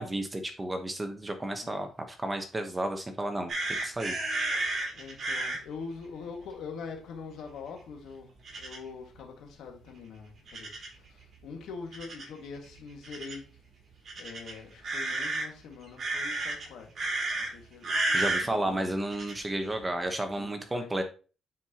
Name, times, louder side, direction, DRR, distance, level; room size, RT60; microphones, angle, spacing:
voice 1, 0.0-3.5 3.8-4.2 18.1-21.0, right 1 dB, 15° right, 1.0 m, -32 dB
sound 1, 3.5-5.6 8.4-8.8 10.5-11.0 11.9-12.2 13.0-13.3 14.0-15.4 16.0-16.6 16.9-17.5 17.8-18.5 19.1-19.3, right 2 dB, 45° right, 3.7 m, -31 dB
voice 2, 4.9-8.3 8.6-10.7 11.4-13.4 14.2-16.9 17.5-17.9 18.4-18.8 20.4-21.0, left 5 dB, 80° left, 1.9 m, -43 dB
9.5 x 4.6 x 2.9 m
cardioid pair, 100°, 0 cm